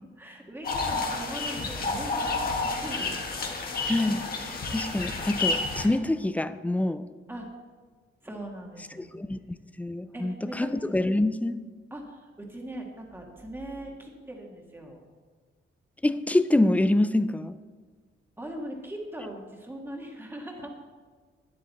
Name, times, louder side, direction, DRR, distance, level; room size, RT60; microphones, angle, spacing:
voice 1, 0.0-3.4 7.3-7.5 8.2-9.2 10.1-10.7 11.9-15.0 18.4-20.7, right 1 dB, 10° right, 1 dB, 1.6 m, -40 dB
sound 1, 0.6-5.9, left 3 dB, 45° left, 1.7 m, -30 dB
voice 2, 3.9-7.1 9.0-11.6 16.0-17.6, left 1 dB, 5° left, 12 dB, 0.4 m, -26 dB
12.0 x 10.0 x 4.1 m, 1.5 s
wide cardioid pair, 145°, 21 cm